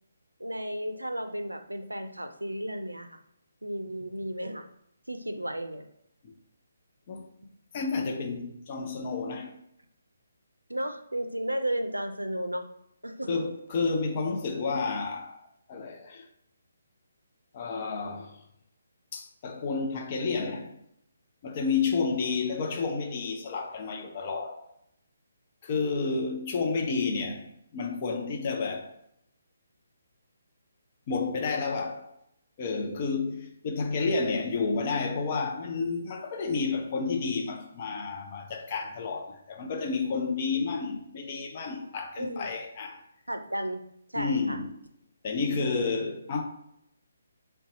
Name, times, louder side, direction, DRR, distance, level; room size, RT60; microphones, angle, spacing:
voice 1, 0.4-3.2 3.6-4.7 5.1-5.8 10.7-12.6 13.0-13.4 42.2-42.5 43.3-43.8 44.1-44.6, right 1 dB, 85° right, 0.4 m, -33 dB
voice 2, 7.7-9.5 13.3-15.4 15.7-16.3 17.5-18.4 19.1-20.8 21.4-24.6 25.6-28.9 31.1-32.1 32.6-43.0 44.1-44.7 45.2-46.4, left 4 dB, 35° left, 0.6 m, -30 dB
4.0 x 2.2 x 3.9 m
figure-of-eight pair, 140°, 0 cm